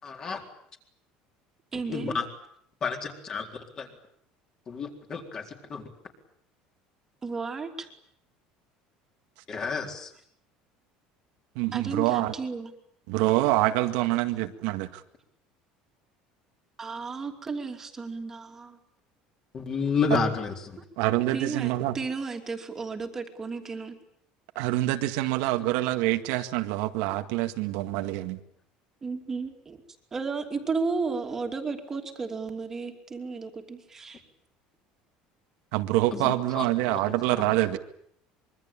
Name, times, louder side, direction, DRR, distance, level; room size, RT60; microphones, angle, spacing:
voice 1, 0.0-0.4 1.9-2.2 2.8-3.9 4.7-5.8 9.5-10.1 19.5-20.8 36.1-37.1, left 5 dB, 25° left, 3 dB, 4.0 m, -31 dB
voice 2, 1.7-2.2 7.2-7.9 11.7-12.7 16.8-18.8 21.3-24.0 29.0-29.8 30.1-34.2, right 4 dB, 15° right, 4 dB, 2.9 m, -33 dB
voice 3, 11.6-12.3 13.1-15.0 21.0-21.9 24.6-28.4 35.7-37.8, right 16 dB, 75° right, 6 dB, 2.0 m, -26 dB
25.5 x 23.5 x 8.9 m, 0.69 s
cardioid pair, 175°, 3 cm